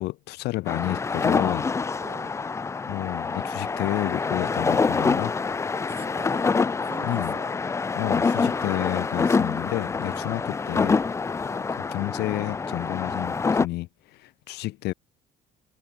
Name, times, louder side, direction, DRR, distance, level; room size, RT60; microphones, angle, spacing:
voice 1, 0.0-1.7 2.9-5.3 7.0-7.3 8.0-11.0 11.3-14.9, left 19 dB, 75° left, 0.5 m, -31 dB
sound 1, 0.7-13.7, left 4 dB, 15° left, 0.4 m, -26 dB
voice 2, 2.0-2.3 5.9-6.5 6.8-7.5 10.2-10.4 11.5-11.8, right 6 dB, 35° right, 1.9 m, -44 dB
cardioid pair, 110°, 17 cm